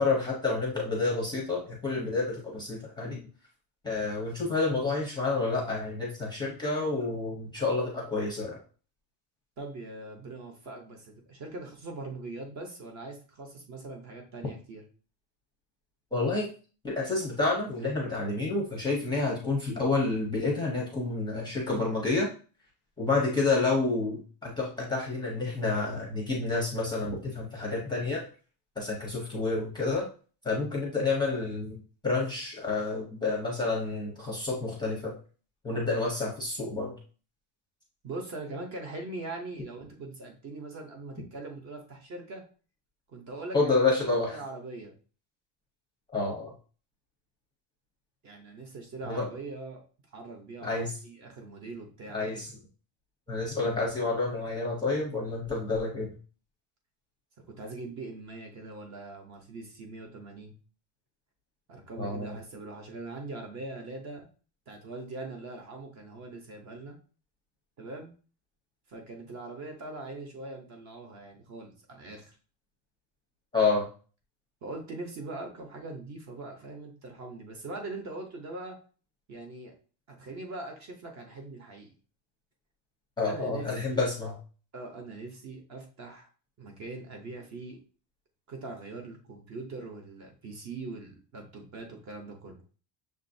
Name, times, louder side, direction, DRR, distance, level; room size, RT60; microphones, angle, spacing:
voice 1, 0.0-3.2 3.8-8.6 16.1-16.5 16.8-22.3 23.0-28.2 28.8-30.0 30.4-35.1 35.6-36.9 43.5-44.4 46.1-46.5 49.0-49.3 50.6-50.9 52.1-52.5 53.3-56.1 62.0-62.4 73.5-73.9 83.2-84.3, left 3 dB, 10° left, -3 dB, 0.6 m, -29 dB
voice 2, 9.6-14.8 38.0-42.4 43.1-43.8 44.3-44.9 48.2-49.8 50.1-52.4 57.5-60.6 61.7-64.3 64.7-67.0 67.8-68.1 68.9-72.4 74.6-78.8 79.3-79.7 80.1-81.9 83.2-84.0 84.7-86.3 86.6-87.8 88.5-92.6, right 2 dB, 35° right, 2 dB, 0.8 m, -41 dB
6.3 x 2.5 x 2.6 m, 0.38 s
cardioid pair, 180°, 46 cm